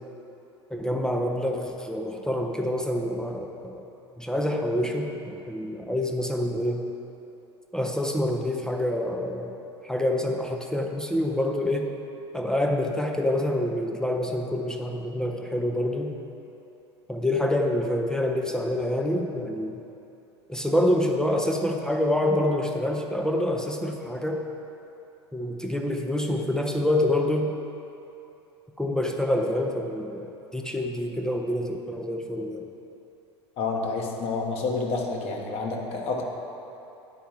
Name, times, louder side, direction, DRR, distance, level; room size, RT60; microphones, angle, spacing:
voice 1, 0.7-3.8 4.2-6.9 7.7-9.5 9.8-11.9 12.3-16.1 17.1-19.8 20.5-24.4 25.3-27.5 28.8-32.7, left 1 dB, 5° left, 2 dB, 0.5 m, -27 dB
voice 2, 33.6-36.3, left 3 dB, 45° left, 0 dB, 1.0 m, -29 dB
9.2 x 4.5 x 4.4 m, 2.8 s
figure-of-eight pair, 75°, 15 cm